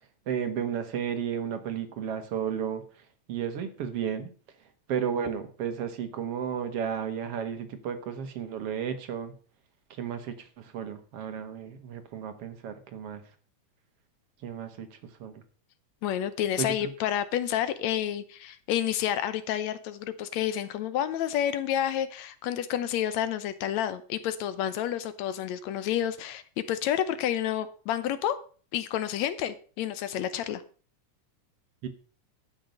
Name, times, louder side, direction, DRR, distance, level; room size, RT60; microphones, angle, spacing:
voice 1, 0.3-2.8 3.3-4.3 4.9-9.3 10.0-13.2 14.4-14.9 15.2-15.3 16.6-16.9 31.8-31.9, right 8 dB, 60° right, 9 dB, 2.1 m, -33 dB
voice 2, 16.0-28.4 28.7-30.6, left 10 dB, 75° left, 13 dB, 2.0 m, -29 dB
12.0 x 5.9 x 6.5 m, 0.40 s
omnidirectional pair, 3.4 m